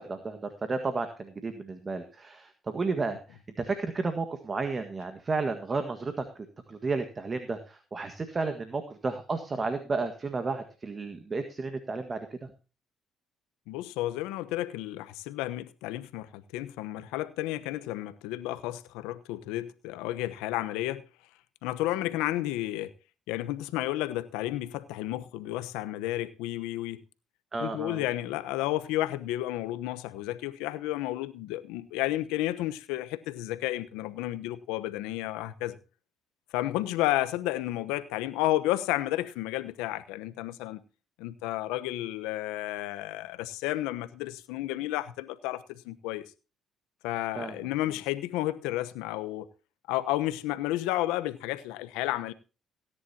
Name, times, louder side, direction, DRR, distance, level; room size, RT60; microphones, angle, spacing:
voice 1, 0.0-3.2 3.6-6.3 6.7-12.2 27.5-28.0 47.4-47.5, right 3 dB, 35° right, 1.7 m, -32 dB
voice 2, 13.7-21.0 21.6-22.9 23.3-27.0 27.6-35.8 36.5-40.8 41.2-46.3 47.0-49.5 49.9-52.3, left 15 dB, 85° left, 1.0 m, -32 dB
17.5 x 10.5 x 2.8 m
supercardioid pair, 70°, 0 cm